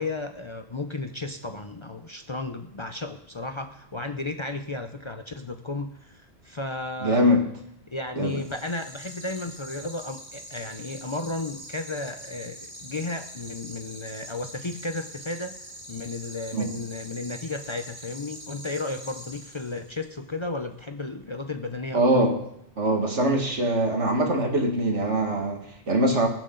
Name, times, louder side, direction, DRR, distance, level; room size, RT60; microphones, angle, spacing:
voice 1, 0.0-7.4 7.9-15.6 15.9-22.0, left 2 dB, 30° left, 6 dB, 0.6 m, -34 dB
voice 2, 7.0-7.5 8.2-8.4 16.5-16.7 21.9-22.4 22.8-26.3, right 1 dB, 85° right, 2 dB, 2.3 m, -23 dB
sound 1, 8.2-20.1, right 1 dB, 25° right, 1.8 m, -44 dB
22.0 x 7.5 x 3.9 m, 0.75 s
omnidirectional pair, 1.2 m